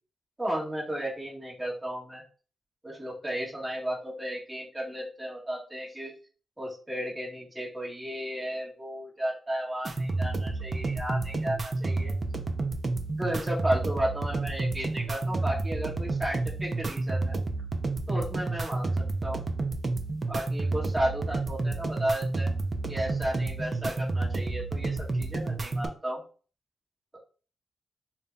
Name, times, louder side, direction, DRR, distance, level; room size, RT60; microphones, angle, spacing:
voice 1, 0.4-2.2 2.8-6.1 6.6-12.1 13.1-17.4 18.1-18.9 19.2-19.4 20.3-22.5 22.9-26.2, right 1 dB, 15° right, -6 dB, 1.7 m, -33 dB
sound 1, 9.8-25.9, right 3 dB, 35° right, 0.5 m, -30 dB
5.1 x 2.2 x 2.7 m, 0.39 s
cardioid pair, 95°, 0 cm